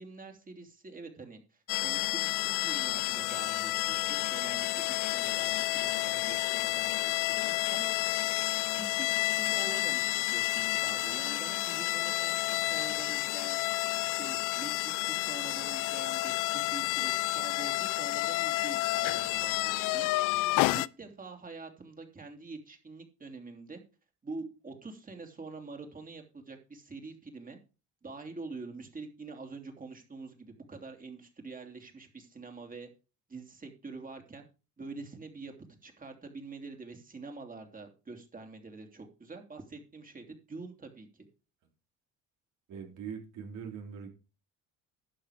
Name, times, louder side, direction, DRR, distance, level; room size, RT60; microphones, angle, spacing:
voice 1, 0.0-7.9 8.7-13.6 14.0-20.1 20.7-23.8 24.2-27.6 28.0-32.9 33.3-34.4 34.8-35.5 35.8-41.3, right 3 dB, 25° right, 5 dB, 2.9 m, -46 dB
sound 1, 1.7-20.9, left 20 dB, 70° left, 0.5 m, -30 dB
voice 2, 42.7-44.1, right 7 dB, 70° right, 2 dB, 3.5 m, -41 dB
11.5 x 6.9 x 5.0 m, 0.33 s
supercardioid pair, 85°, 32 cm